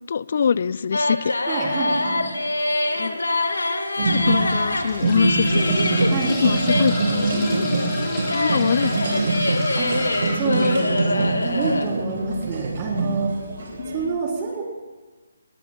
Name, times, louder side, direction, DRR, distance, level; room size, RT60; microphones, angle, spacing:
voice 1, 0.1-1.3 3.0-3.2 4.1-7.0 7.3-7.5 8.3-9.3 13.8-14.2, left 6 dB, 50° left, 20 dB, 0.4 m, -24 dB
sound 1, 0.9-11.9, left 2 dB, 80° left, 1.4 m, -25 dB
voice 2, 1.5-2.3 6.1-6.6 9.8-9.9 10.3-13.3 13.9-14.6, right 4 dB, 25° right, -1 dB, 3.4 m, -27 dB
sound 2, 2.5-2.7 3.4-3.5 4.4-10.8 12.4-12.5 12.8-12.9, left 1 dB, 15° left, 4.6 m, -33 dB
sound 3, 4.0-14.1, right 3 dB, 60° right, 3.8 m, -25 dB
20.5 x 16.5 x 2.3 m, 1.3 s
figure-of-eight pair, 150°, 0 cm